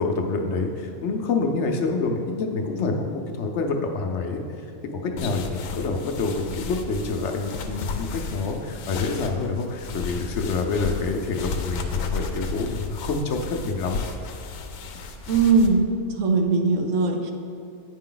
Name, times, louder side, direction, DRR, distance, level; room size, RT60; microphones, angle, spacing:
voice 1, 0.0-4.4 5.0-14.0, left 3 dB, 65° left, 3 dB, 0.9 m, -27 dB
sound 1, 5.2-15.7, left 4 dB, 90° left, 1.0 m, -33 dB
voice 2, 15.3-15.9 16.2-17.3, right 4 dB, 75° right, 4 dB, 1.1 m, -20 dB
9.0 x 5.3 x 3.8 m, 2.5 s
omnidirectional pair, 1.3 m